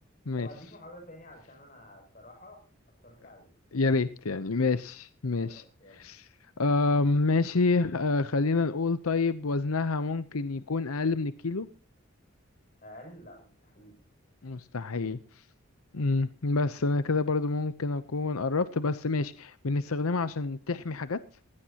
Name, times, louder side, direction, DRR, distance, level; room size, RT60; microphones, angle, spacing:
voice 1, 0.4-2.6 3.0-3.5 5.4-6.1 12.8-14.0, left 1 dB, 40° left, 3 dB, 7.2 m, -49 dB
voice 2, 3.7-5.6 5.9-6.3 6.6-11.7 14.4-15.2 15.9-21.2, left 3 dB, 85° left, 13 dB, 0.8 m, -28 dB
20.0 x 16.5 x 2.9 m, 0.39 s
head